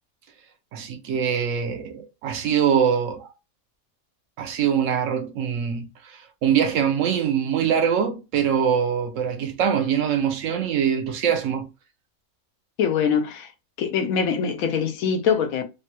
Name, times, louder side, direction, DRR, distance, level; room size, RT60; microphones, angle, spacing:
voice 1, 0.7-3.3 4.4-11.7, right 8 dB, 70° right, 0.9 m, -23 dB
voice 2, 12.8-13.5 13.8-15.6, left 6 dB, 80° left, 1.0 m, -23 dB
3.2 x 2.2 x 2.8 m
omnidirectional pair, 1.4 m